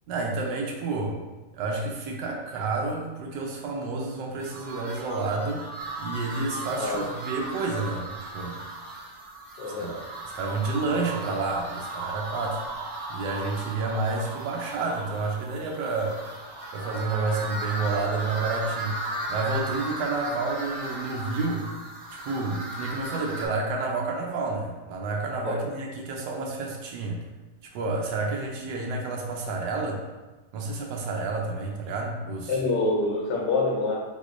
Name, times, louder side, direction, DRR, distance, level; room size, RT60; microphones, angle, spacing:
voice 1, 0.1-1.2 1.5-8.6 9.8-9.9 10.3-12.6 13.1-16.2 16.7-21.7 22.1-27.2 27.7-30.0 30.5-32.6, right 3 dB, 90° right, 0 dB, 1.2 m, -30 dB
sound 1, 4.4-23.5, right 2 dB, 60° right, 1.2 m, -36 dB
voice 2, 9.6-9.9 25.4-25.6 32.5-34.0, left 3 dB, 80° left, -1 dB, 1.3 m, -26 dB
3.5 x 3.0 x 2.4 m, 1.2 s
omnidirectional pair, 1.9 m